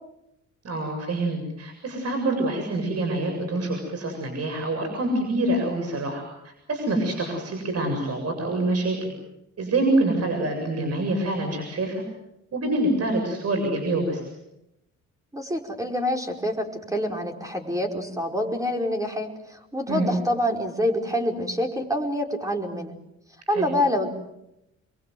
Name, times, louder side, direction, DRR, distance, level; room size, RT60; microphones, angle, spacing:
voice 1, 0.6-9.1 9.6-12.0 12.5-14.2 19.9-20.1 23.5-23.7, right 2 dB, 55° right, 4 dB, 7.5 m, -26 dB
voice 2, 15.3-22.9 23.5-24.1, equal, 10° right, 3 dB, 5.0 m, -26 dB
28.5 x 22.5 x 7.9 m, 0.85 s
cardioid pair, 90°, 30 cm